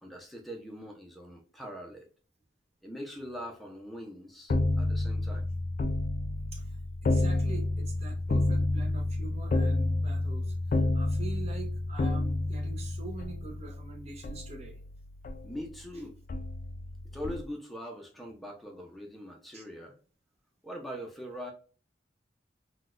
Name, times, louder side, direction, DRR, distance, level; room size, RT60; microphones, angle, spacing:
voice 1, 0.0-2.1 2.8-5.4 15.4-16.2 17.1-20.0 20.6-21.5, equal, ahead, 1 dB, 0.6 m, -42 dB
sound 1, 4.5-15.9 16.3-17.4, left 2 dB, 45° left, 0.3 m, -30 dB
voice 2, 7.0-14.8 19.5-19.6, right 3 dB, 35° right, 0 dB, 0.8 m, -44 dB
3.8 x 2.2 x 2.4 m, 0.39 s
head